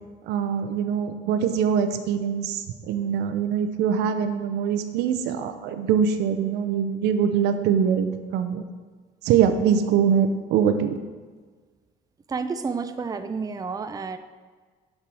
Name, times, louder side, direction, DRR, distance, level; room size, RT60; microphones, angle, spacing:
voice 1, 0.3-8.6 9.2-11.0, right 7 dB, 85° right, 8 dB, 0.8 m, -23 dB
voice 2, 12.3-14.2, right 5 dB, 20° right, 9 dB, 0.5 m, -30 dB
7.1 x 6.7 x 6.2 m, 1.4 s
cardioid pair, 110°, 17 cm